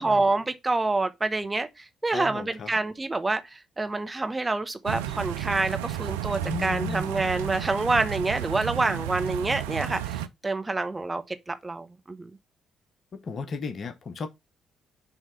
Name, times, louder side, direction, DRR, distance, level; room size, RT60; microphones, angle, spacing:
voice 1, 0.0-12.3, right 3 dB, 25° right, 1.0 m, -27 dB
voice 2, 2.1-2.7 6.4-7.1 9.7-9.9 13.1-14.3, left 4 dB, 50° left, 0.8 m, -35 dB
sound 1, 4.8-10.3, right 12 dB, 80° right, 0.4 m, -32 dB
6.6 x 3.3 x 5.5 m
hypercardioid pair, 45°, 0 cm